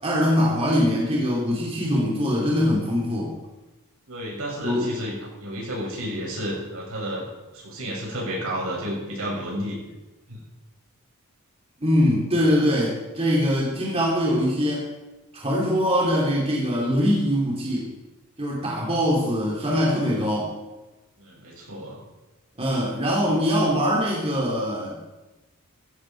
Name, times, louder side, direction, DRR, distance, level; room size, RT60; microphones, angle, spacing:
voice 1, 0.0-3.3 4.6-4.8 11.8-14.8 15.3-17.9 18.4-20.5 22.6-25.1, equal, 25° right, -4 dB, 2.9 m, -22 dB
voice 2, 4.1-5.1 5.4-7.3 7.5-9.8 10.3-10.5 21.2-22.0, equal, 70° right, -3 dB, 7.0 m, -31 dB
16.5 x 15.0 x 4.6 m, 1.1 s
head